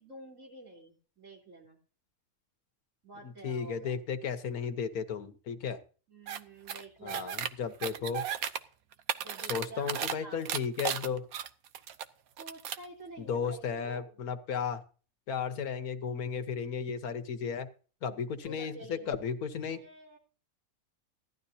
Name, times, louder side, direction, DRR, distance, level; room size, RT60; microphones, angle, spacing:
voice 1, 0.0-1.8 3.0-4.0 6.1-7.3 9.2-10.4 12.4-14.1 18.4-19.1 19.7-20.2, right 1 dB, 60° right, -1 dB, 3.9 m, -49 dB
voice 2, 3.2-5.8 7.0-8.2 9.5-11.3 13.2-14.8 15.3-17.7 18.0-19.8, left 6 dB, 80° left, 10 dB, 1.6 m, -34 dB
sound 1, 6.3-6.4 6.7-7.5 7.8-8.6 8.9-10.1 10.5-12.0 12.4-12.9, right 9 dB, 75° right, 1.2 m, -34 dB
16.5 x 12.0 x 2.8 m, 0.38 s
omnidirectional pair, 1.5 m